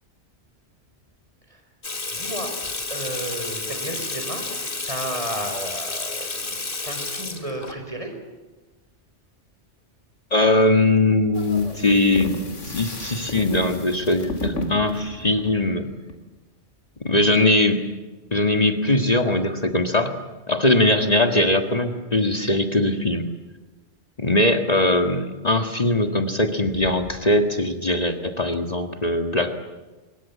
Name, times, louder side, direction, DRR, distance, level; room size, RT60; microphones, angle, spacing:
Water tap faucet / Sink (filling or washing), 1.8-7.7, left 3 dB, 50° left, 2.4 m, -31 dB
voice 1, 2.1-2.5 2.9-8.2, right 1 dB, 30° right, 5 dB, 4.8 m, -33 dB
voice 2, 10.3-15.9 17.0-17.8 18.3-20.1 20.5-23.3 24.2-29.6, left 2 dB, 35° left, 6 dB, 1.8 m, -21 dB
sound 1, 11.3-16.2, left 1 dB, 85° left, 3.2 m, -33 dB
25.0 x 22.0 x 8.3 m, 1.2 s
omnidirectional pair, 1.2 m